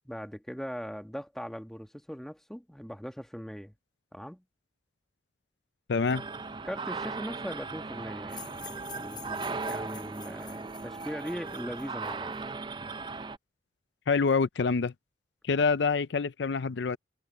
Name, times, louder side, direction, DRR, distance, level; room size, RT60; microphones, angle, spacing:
voice 1, 0.0-3.7 4.1-4.4 6.6-12.5, equal, ahead, 1.4 m, -40 dB
voice 2, 5.9-6.2 14.1-14.9 15.5-17.0, left 4 dB, 70° left, 0.5 m, -26 dB
sound 1, 6.1-13.4, right 4 dB, 25° right, 0.4 m, -37 dB
sound 2, 8.3-12.4, left 8 dB, 25° left, 5.1 m, -49 dB
head